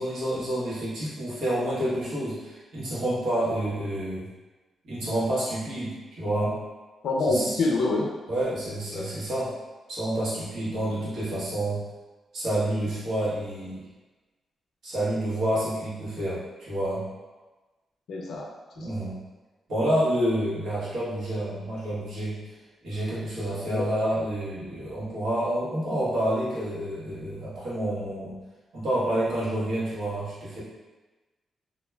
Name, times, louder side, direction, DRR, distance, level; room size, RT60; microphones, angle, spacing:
voice 1, 0.0-4.3 4.8-6.6 7.3-7.6 8.3-9.5 9.9-11.9 12.3-13.8 14.8-17.1 18.8-19.2 19.7-22.4 22.8-28.3 28.7-30.6, right 1 dB, 70° right, -9 dB, 1.0 m, -28 dB
voice 2, 7.0-8.1 8.9-9.1 18.1-18.5 18.8-19.0 23.7-23.9, left 2 dB, 75° left, -1 dB, 0.4 m, -26 dB
2.2 x 2.1 x 3.2 m, 1.2 s
wide cardioid pair, 155°, 0 cm